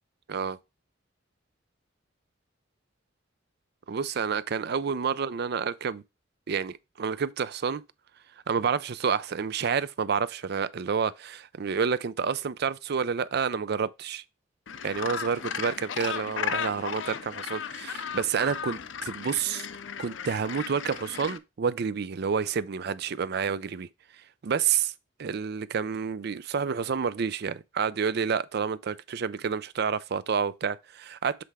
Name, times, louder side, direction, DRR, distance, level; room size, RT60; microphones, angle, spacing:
voice 1, 3.9-6.0 6.5-7.8 8.5-14.2 14.8-19.7 20.0-23.9 24.4-24.9 25.2-31.4, right 6 dB, 60° right, 0.5 m, -29 dB
Gull seagull, 14.7-21.4, left 7 dB, 75° left, 0.5 m, -35 dB
7.7 x 3.4 x 4.8 m
head